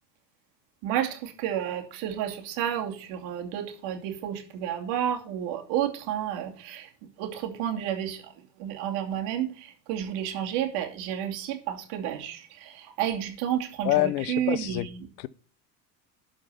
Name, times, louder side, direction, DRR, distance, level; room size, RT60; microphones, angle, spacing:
voice 1, 0.8-6.9 7.2-8.3 8.6-15.1, right 10 dB, 65° right, 2.8 m, -31 dB
voice 2, 13.8-14.9 15.2-15.3, left 16 dB, 80° left, 0.7 m, -26 dB
12.5 x 5.2 x 5.7 m
hypercardioid pair, 85°, 50 cm